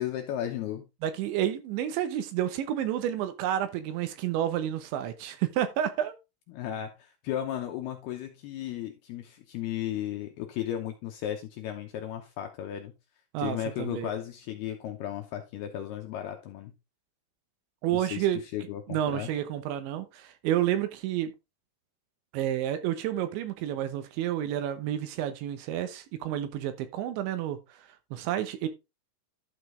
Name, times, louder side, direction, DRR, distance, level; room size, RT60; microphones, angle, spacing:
voice 1, 0.0-0.9 6.5-12.9 13.4-16.7 17.9-18.3 18.5-19.3, left 11 dB, 80° left, 2.4 m, -35 dB
voice 2, 1.0-6.2 13.3-14.1 17.8-18.4 18.9-21.3 22.3-27.6 28.1-28.7, right 11 dB, 80° right, 3.2 m, -30 dB
12.0 x 5.1 x 3.7 m
omnidirectional pair, 5.5 m